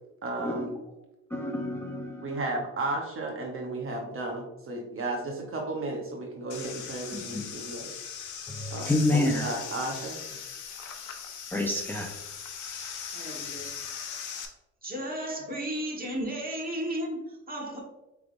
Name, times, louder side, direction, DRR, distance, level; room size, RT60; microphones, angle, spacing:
voice 1, 0.2-0.8 2.2-7.9 8.7-10.2, right 2 dB, 45° right, 1 dB, 0.8 m, -34 dB
voice 2, 1.3-2.3 7.1-7.5 8.5-9.4 11.5-12.2, left 2 dB, 5° left, 0 dB, 0.6 m, -28 dB
sound 1, 6.5-14.5, left 7 dB, 80° left, 0.8 m, -39 dB
voice 3, 13.0-13.6 14.8-17.8, right 1 dB, 30° right, -1 dB, 1.4 m, -34 dB
4.9 x 3.4 x 2.5 m, 0.96 s
cardioid pair, 90°, 30 cm